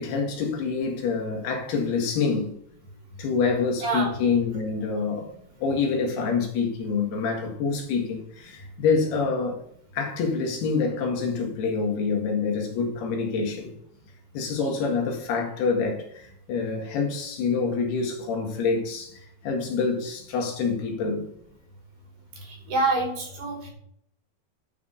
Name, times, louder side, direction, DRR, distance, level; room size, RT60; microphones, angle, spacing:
voice 1, 0.0-2.5 3.2-5.3 5.6-9.6 9.9-13.8 14.3-21.2, left 5 dB, 75° left, 3.9 m, -26 dB
voice 2, 3.8-4.2 22.7-23.7, right 3 dB, 60° right, 4.3 m, -26 dB
11.0 x 6.0 x 5.2 m
omnidirectional pair, 4.7 m